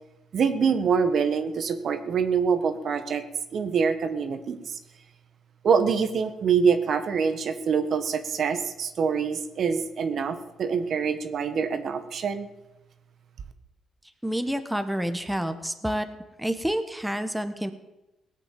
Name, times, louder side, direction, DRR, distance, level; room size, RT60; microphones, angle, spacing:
voice 1, 0.3-3.2 3.5-4.8 5.6-12.5, right 6 dB, 60° right, 9 dB, 1.4 m, -25 dB
voice 2, 14.2-16.1 16.4-17.7, equal, 5° right, 8 dB, 1.4 m, -28 dB
18.0 x 8.3 x 7.7 m, 1.0 s
cardioid pair, 90°, 0 cm